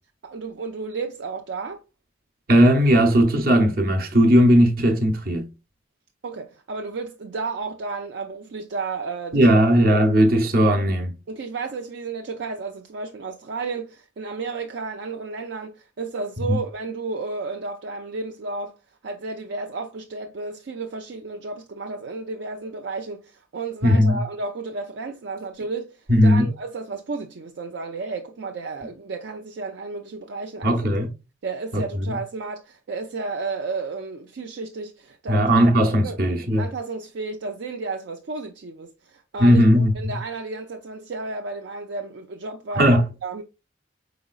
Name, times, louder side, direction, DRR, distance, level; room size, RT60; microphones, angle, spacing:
voice 1, 0.2-1.8 6.2-9.7 9.9-10.0 11.3-18.8 19.0-30.7 31.4-35.4 36.0-36.2 36.6-43.4, right 4 dB, 75° right, 0.4 m, -32 dB
voice 2, 2.5-5.5 9.3-11.1 16.5-16.6 23.8-24.2 26.1-26.5 30.6-31.1 31.7-32.2 35.3-36.7 39.4-40.2 42.8-43.1, equal, 50° right, 0.8 m, -17 dB
4.9 x 3.9 x 2.4 m
head